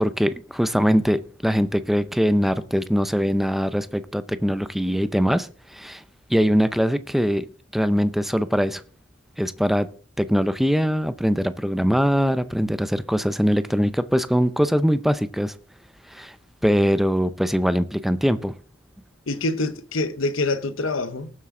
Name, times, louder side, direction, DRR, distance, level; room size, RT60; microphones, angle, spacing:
voice 1, 0.0-6.0 6.3-7.5 7.7-8.8 9.4-9.9 10.2-15.5 16.1-16.4 16.6-18.5, equal, ahead, 0.6 m, -22 dB
voice 2, 19.3-21.3, left 2 dB, 75° left, 1.0 m, -25 dB
19.0 x 7.5 x 3.8 m
head